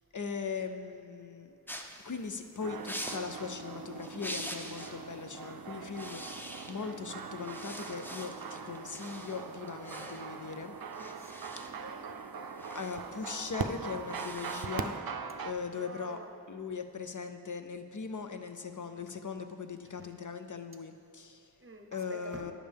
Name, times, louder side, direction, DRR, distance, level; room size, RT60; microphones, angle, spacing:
voice 1, 0.1-1.5 2.0-10.7 12.7-15.0 15.4-16.2 16.5-21.5 21.9-22.5, left 5 dB, 55° left, 7 dB, 0.5 m, -39 dB
sound 1, 1.7-5.0 5.3-5.5 5.8-7.0 7.4-15.0, equal, 5° left, 0.5 m, -45 dB
sound 2, 2.6-15.5, right 6 dB, 65° right, 0.5 m, -41 dB
voice 2, 10.9-12.0 15.7-16.3 20.0-20.1 21.6-22.5, right 2 dB, 35° right, 4 dB, 0.7 m, -48 dB
9.8 x 7.3 x 3.4 m, 2.5 s
wide cardioid pair, 50°, 38 cm